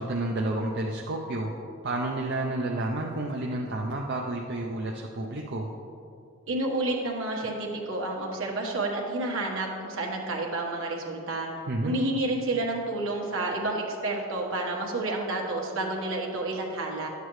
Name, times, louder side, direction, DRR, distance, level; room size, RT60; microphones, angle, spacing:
voice 1, 0.0-1.5 1.8-5.7 11.7-12.0, right 2 dB, 55° right, -1 dB, 0.5 m, -30 dB
voice 2, 6.5-11.5 11.8-17.1, right 2 dB, 75° right, -1 dB, 1.4 m, -30 dB
10.5 x 8.2 x 3.1 m, 2.5 s
head